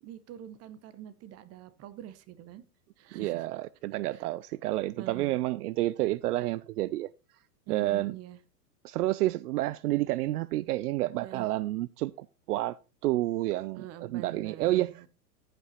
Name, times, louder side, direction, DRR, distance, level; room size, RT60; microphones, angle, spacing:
voice 1, 0.0-2.6 3.0-3.5 4.1-4.2 5.0-5.4 7.7-8.4 11.2-11.5 13.8-15.1, right 11 dB, 30° right, 1.1 m, -45 dB
voice 2, 3.1-7.1 7.7-8.1 8.8-12.8 13.0-15.1, right 16 dB, 70° right, 0.5 m, -30 dB
14.5 x 5.7 x 4.2 m
hypercardioid pair, 115°, 47 cm